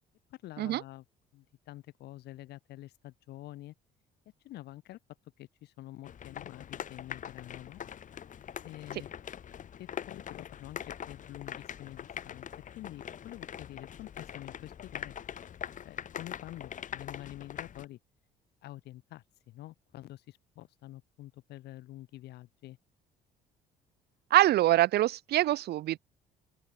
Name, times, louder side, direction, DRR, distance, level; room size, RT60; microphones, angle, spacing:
voice 1, 0.3-1.0 1.3-3.7 4.4-5.0 5.4-7.8 8.6-9.1 9.8-10.8 11.1-12.4 12.7-15.1 15.8-18.0 18.6-22.8, left 15 dB, 75° left, 8.0 m, -47 dB
sound 1, 6.0-17.9, left 9 dB, 50° left, 7.9 m, -43 dB
voice 2, 24.3-26.0, right 14 dB, 70° right, 2.9 m, -24 dB
open air
cardioid pair, 110°, 17 cm